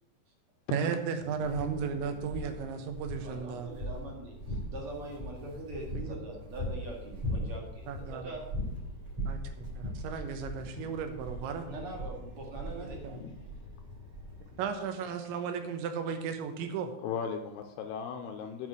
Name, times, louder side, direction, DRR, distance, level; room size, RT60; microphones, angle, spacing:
voice 1, 0.7-3.7 5.9-6.2 7.9-8.3 9.3-11.7 12.8-13.2 14.6-16.9, right 6 dB, 75° right, 7 dB, 3.3 m, -35 dB
sound 1, 1.2-14.7, equal, 30° right, 3.8 m, -40 dB
voice 2, 3.2-8.4 11.7-13.0, right 2 dB, 50° right, -1 dB, 1.8 m, -43 dB
voice 3, 17.0-18.7, left 6 dB, 90° left, 5 dB, 2.3 m, -37 dB
9.1 x 5.7 x 8.0 m, 0.87 s
omnidirectional pair, 5.5 m